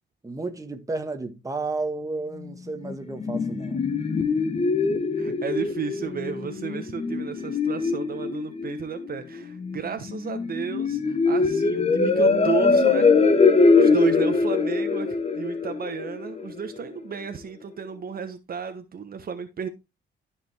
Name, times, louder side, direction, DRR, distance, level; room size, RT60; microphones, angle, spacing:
voice 1, 0.2-3.8, right 3 dB, 15° right, 1.6 m, -32 dB
sound 1, 2.8-16.8, left 4 dB, 30° left, 1.3 m, -22 dB
voice 2, 5.2-13.1 13.4-15.1 15.3-19.7, right 6 dB, 50° right, 1.2 m, -33 dB
13.0 x 5.2 x 3.5 m
cardioid pair, 90°, 20 cm